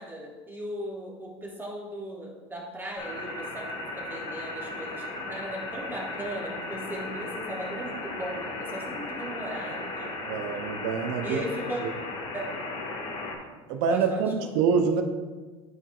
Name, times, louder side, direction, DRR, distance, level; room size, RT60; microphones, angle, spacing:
voice 1, 0.0-10.2 11.2-11.9 12.3-12.5 13.9-14.5, right 1 dB, 15° right, -3 dB, 2.3 m, -37 dB
sound 1, 3.0-13.4, left 2 dB, 45° left, 1.7 m, -36 dB
voice 2, 10.3-11.4 13.7-15.0, right 6 dB, 65° right, 6 dB, 0.7 m, -25 dB
12.0 x 4.7 x 2.4 m, 1.3 s
hypercardioid pair, 85°, 15 cm